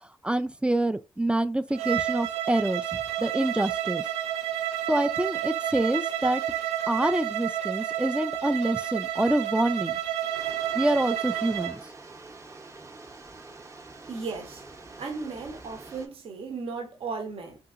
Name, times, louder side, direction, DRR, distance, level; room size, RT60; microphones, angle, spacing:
voice 1, 0.2-2.8 3.2-4.0 4.9-6.4 6.9-10.0 10.7-11.8, right 1 dB, 10° right, 0.3 m, -26 dB
Bowed string instrument, 1.7-11.8, right 11 dB, 85° right, 0.4 m, -30 dB
sound 1, 10.3-16.1, right 3 dB, 25° right, 0.8 m, -46 dB
voice 2, 14.1-14.6 15.0-17.6, right 4 dB, 60° right, 0.8 m, -35 dB
2.8 x 2.7 x 2.4 m
supercardioid pair, 45°, 11 cm